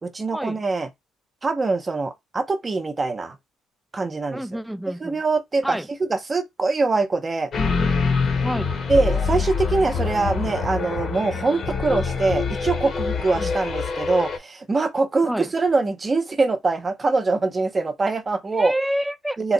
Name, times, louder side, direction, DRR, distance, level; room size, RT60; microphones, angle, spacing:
voice 1, 0.0-0.9 1.4-3.4 3.9-4.4 5.0-7.5 8.9-18.7 19.4-19.5, right 3 dB, 25° right, 0.7 m, -23 dB
voice 2, 4.3-5.2 5.6-5.9 8.4-8.7 13.4-13.5 15.2-15.5 18.5-19.4, equal, ahead, 0.3 m, -28 dB
sound 1, 7.5-14.4, left 5 dB, 45° left, 0.9 m, -25 dB
3.0 x 2.5 x 3.9 m
cardioid pair, 100°, 0 cm